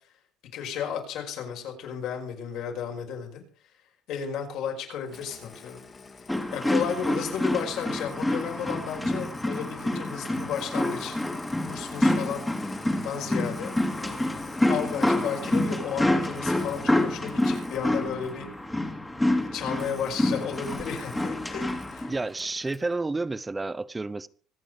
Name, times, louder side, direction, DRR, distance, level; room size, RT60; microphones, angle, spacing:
voice 1, 0.5-3.4 4.1-5.8 6.5-11.2 11.7-12.5 13.0-18.5 18.7-18.9 19.4-22.1, left 7 dB, 60° left, 5.4 m, -33 dB
Engine starting, 5.1-18.5 19.7-22.9, left 4 dB, 25° left, 2.5 m, -47 dB
sound 1, 6.3-22.1, left 1 dB, 5° left, 2.4 m, -27 dB
voice 2, 22.1-24.3, right 3 dB, 10° right, 0.6 m, -30 dB
25.0 x 9.1 x 5.0 m
cardioid pair, 155°, 0 cm